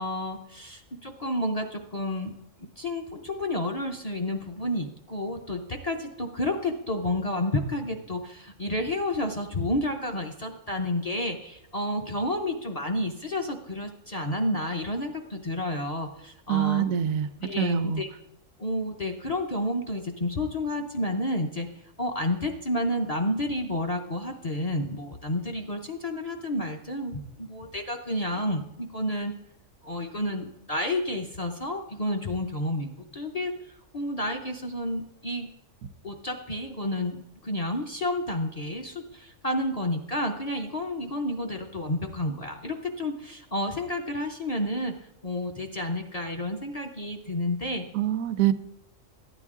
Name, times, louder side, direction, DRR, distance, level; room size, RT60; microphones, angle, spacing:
voice 1, 0.0-2.3 2.6-16.9 17.4-18.1 18.6-21.7 22.0-29.3 29.8-33.5 33.9-35.5 36.0-44.9 45.2-47.9, left 1 dB, 45° left, 3 dB, 0.5 m, -30 dB
voice 2, 16.5-17.3 17.6-18.0 47.9-48.5, right 11 dB, 90° right, 13 dB, 1.0 m, -25 dB
12.5 x 9.0 x 3.6 m, 0.82 s
omnidirectional pair, 1.4 m